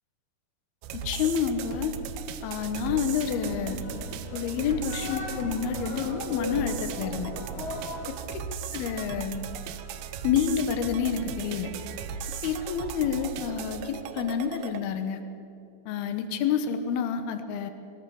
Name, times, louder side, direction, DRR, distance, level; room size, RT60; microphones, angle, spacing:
sound 1, 0.8-14.8, right 7 dB, 85° right, 2.8 m, -37 dB
voice 1, 1.0-1.9 2.4-3.8 4.3-7.3 8.3-8.4 8.7-9.4 10.2-11.7 12.4-15.2 15.9-17.7, left 7 dB, 90° left, 8 dB, 3.1 m, -28 dB
sound 2, 2.6-8.1, left 2 dB, 55° left, 3.3 m, -39 dB
20.5 x 18.0 x 7.1 m, 2.7 s
omnidirectional pair, 4.3 m